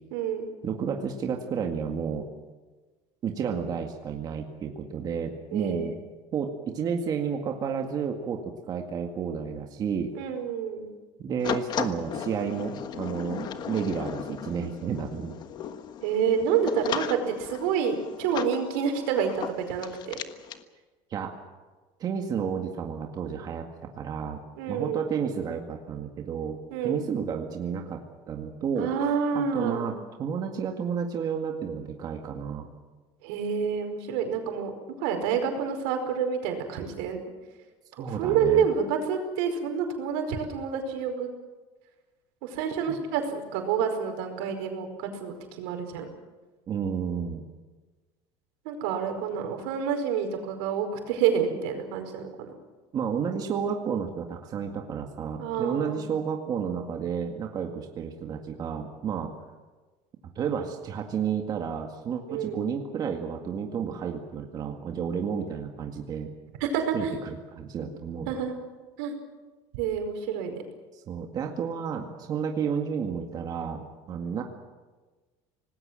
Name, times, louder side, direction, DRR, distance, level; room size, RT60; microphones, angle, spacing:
voice 1, 0.1-0.5 5.5-5.9 10.1-10.9 16.0-20.2 24.6-25.0 26.7-27.0 28.8-29.9 33.2-34.7 35.0-37.2 38.1-41.3 42.4-46.1 48.6-52.5 55.4-56.1 62.3-62.6 66.6-67.1 67.8-67.9 68.3-68.6 69.0-69.1 69.7-70.5, right 7 dB, 85° right, 5 dB, 5.0 m, -28 dB
voice 2, 0.6-2.3 3.2-5.9 6.3-10.1 11.2-15.3 21.1-21.3 22.0-24.4 24.7-26.6 26.8-29.9 30.2-32.7 38.0-38.6 46.7-47.4 52.9-59.3 60.4-66.3 66.9-68.4 70.9-74.4, right 7 dB, 35° right, 3 dB, 2.0 m, -31 dB
sound 1, 11.4-20.6, left 8 dB, 40° left, 1.4 m, -36 dB
25.5 x 19.5 x 7.7 m, 1.3 s
cardioid pair, 150°, 12 cm